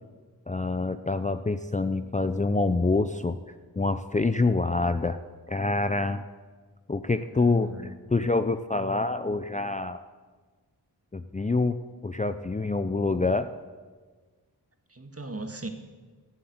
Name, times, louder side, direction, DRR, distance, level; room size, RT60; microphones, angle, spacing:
voice 1, 0.5-5.2 5.5-6.2 6.9-10.0 11.1-13.5, left 3 dB, 20° left, 10 dB, 0.5 m, -26 dB
voice 2, 7.3-8.0 14.9-15.7, right 2 dB, 35° right, 6 dB, 1.6 m, -38 dB
15.5 x 7.7 x 9.4 m, 1.4 s
wide cardioid pair, 70°, 40 cm